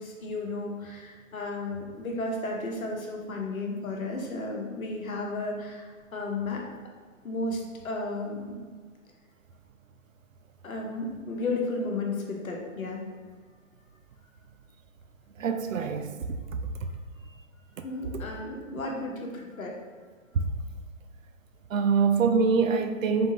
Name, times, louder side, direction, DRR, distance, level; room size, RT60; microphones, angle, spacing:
voice 1, 0.0-6.6 7.2-8.6 10.6-13.0 17.8-19.8, left 2 dB, 80° left, 0 dB, 1.0 m, -33 dB
voice 2, 15.4-16.1 20.3-20.5 21.7-23.3, right 5 dB, 70° right, 7 dB, 0.5 m, -24 dB
3.6 x 3.6 x 2.8 m, 1.5 s
figure-of-eight pair, 130°, 41 cm